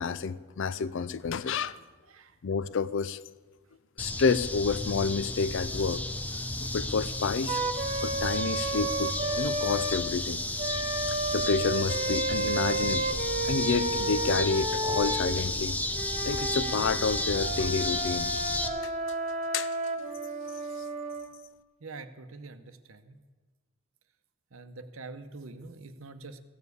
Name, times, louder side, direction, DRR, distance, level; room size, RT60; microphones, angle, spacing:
voice 1, 0.0-1.8 2.4-3.2 4.0-6.0 6.6-7.6 8.0-10.4 11.3-15.8 16.2-18.3 19.5-19.8, left 5 dB, 60° left, 16 dB, 0.4 m, -29 dB
sound 1, 4.0-18.7, left 1 dB, 5° left, 0.6 m, -32 dB
Wind instrument woodwind instrument, 7.5-10.0 10.6-15.3 15.9-21.3, right 2 dB, 30° right, 1.3 m, -32 dB
voice 2, 21.8-23.2 24.5-26.4, right 3 dB, 65° right, 10 dB, 0.8 m, -45 dB
15.0 x 7.1 x 8.2 m, 1.4 s
head